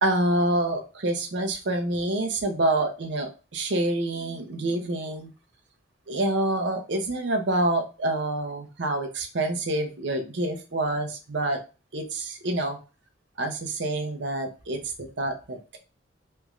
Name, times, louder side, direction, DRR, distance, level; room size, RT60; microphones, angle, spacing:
voice 1, 0.0-5.3 6.1-11.6 11.9-12.8 13.4-15.8, right 1 dB, 60° right, 6 dB, 0.7 m, -27 dB
3.3 x 2.4 x 3.1 m, 0.31 s
head